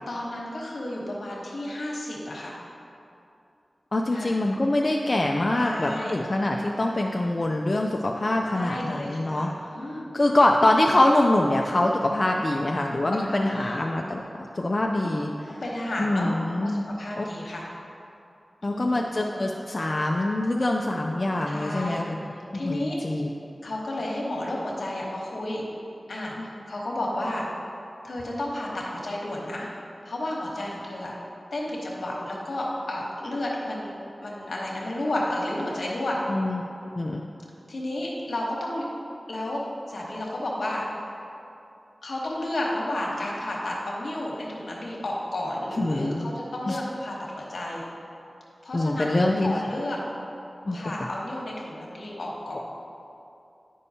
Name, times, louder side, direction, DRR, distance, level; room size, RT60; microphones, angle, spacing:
voice 1, 0.1-2.6 4.1-4.4 5.5-6.2 8.6-10.1 13.1-13.8 15.0-15.2 15.6-16.3 16.6-17.6 18.6-19.0 21.5-22.0 22.3-23.0 23.6-25.6 26.1-27.5 28.0-29.7 30.0-31.1 31.5-33.9 34.2-36.2 37.7-38.9 39.3-39.6 39.9-40.8 42.0-47.9 48.6-50.0 50.7-52.6, left 1 dB, 80° left, -3 dB, 1.1 m, -32 dB
voice 2, 3.9-14.2 14.5-15.6 16.0-16.9 17.2-17.3 18.6-22.2 22.6-23.3 26.4-26.5 36.3-37.3 45.8-46.3 46.7-46.8 48.7-49.6 50.7-50.8, left 1 dB, 50° left, 0 dB, 0.4 m, -24 dB
8.5 x 5.4 x 2.8 m, 2.7 s
cardioid pair, 45°, 0 cm